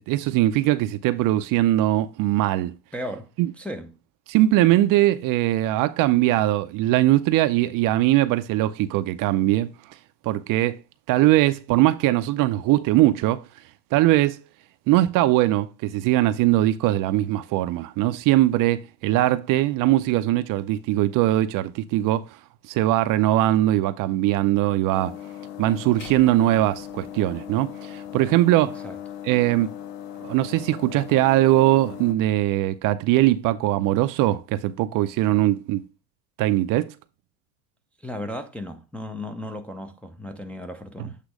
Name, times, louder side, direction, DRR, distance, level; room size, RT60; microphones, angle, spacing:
voice 1, 0.0-2.8 3.4-3.5 4.3-9.7 10.2-10.8 11.1-13.4 13.9-14.4 14.9-22.3 22.7-25.1 25.6-28.8 29.2-29.7 30.2-35.8 36.4-36.9, right 15 dB, 45° right, 0.6 m, -21 dB
voice 2, 2.9-3.3 3.6-4.0 28.8-29.0 38.0-41.2, left 1 dB, 5° left, 0.5 m, -35 dB
sound 1, 24.9-32.1, left 10 dB, 90° left, 0.9 m, -38 dB
sound 2, 26.0-28.3, left 5 dB, 55° left, 2.1 m, -48 dB
8.3 x 3.0 x 4.8 m
supercardioid pair, 125°, 45 cm